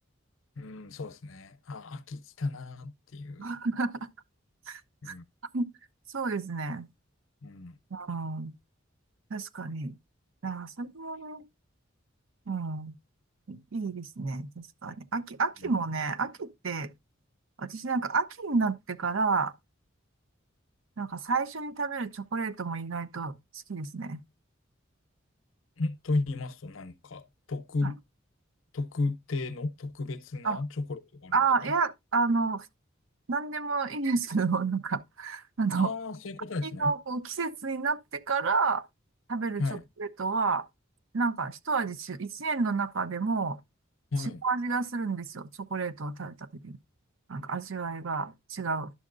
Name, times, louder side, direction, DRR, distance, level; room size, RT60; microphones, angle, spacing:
voice 1, 0.6-3.4 5.0-5.2 7.4-7.7 15.6-15.7 25.8-27.2 27.5-28.0 28.7-31.4 31.6-31.7 35.8-36.9 39.6-39.8 44.1-44.4, left 3 dB, 75° left, 0.7 m, -34 dB
voice 2, 3.4-4.1 4.7-4.8 5.1-5.2 5.5-5.7 6.1-6.9 7.9-8.5 9.3-9.9 10.4-11.4 12.5-12.9 13.5-16.9 17.6-19.5 21.0-23.3 23.7-24.2 27.8-27.9 30.4-30.6 31.3-32.7 33.3-35.9 36.6-38.8 39.3-39.6 40.0-40.7 41.1-43.6 44.2-46.3 46.6-46.8 47.3-48.9, right 4 dB, 75° right, 0.7 m, -30 dB
11.0 x 6.4 x 2.5 m
head